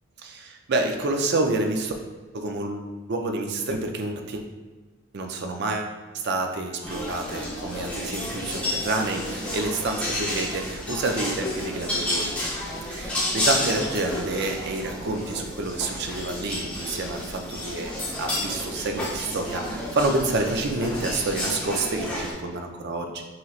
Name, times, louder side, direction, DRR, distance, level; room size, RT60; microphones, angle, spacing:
voice 1, 0.2-1.9 2.3-4.4 5.1-5.9 6.2-12.3 12.8-17.9 18.2-23.2, right 2 dB, 55° right, 4 dB, 0.5 m, -28 dB
sound 1, 6.8-22.3, left 1 dB, 5° left, 1.0 m, -31 dB
5.9 x 3.0 x 2.4 m, 1.3 s
head